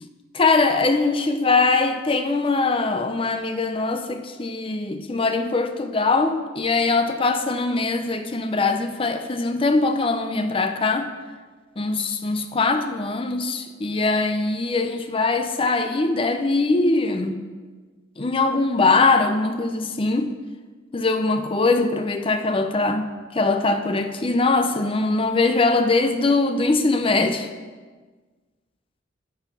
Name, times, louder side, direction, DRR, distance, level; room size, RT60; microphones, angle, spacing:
voice 1, 0.3-11.1 11.8-17.4 18.2-20.3 20.9-27.5, left 3 dB, 30° left, 0.5 m, -22 dB
13.0 x 4.5 x 5.3 m
head